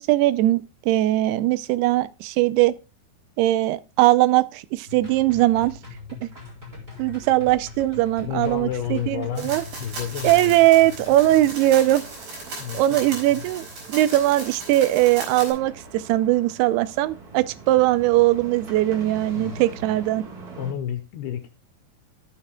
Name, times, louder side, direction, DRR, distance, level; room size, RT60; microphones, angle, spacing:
voice 1, 0.0-2.7 3.4-5.7 6.2-6.3 7.0-9.6 10.2-12.0 12.7-20.2, right 15 dB, 90° right, 2.6 m, -20 dB
sound 1, 4.9-11.4, left 4 dB, 10° right, 3.7 m, -41 dB
voice 2, 8.2-10.6 12.6-13.0 13.3-13.4 19.3-19.6 20.6-21.5, left 9 dB, 85° left, 2.8 m, -31 dB
sound 2, 8.8-20.7, right 4 dB, 70° right, 0.8 m, -43 dB
sound 3, 9.4-15.5, right 2 dB, 55° right, 6.0 m, -37 dB
16.5 x 6.8 x 2.2 m
omnidirectional pair, 4.5 m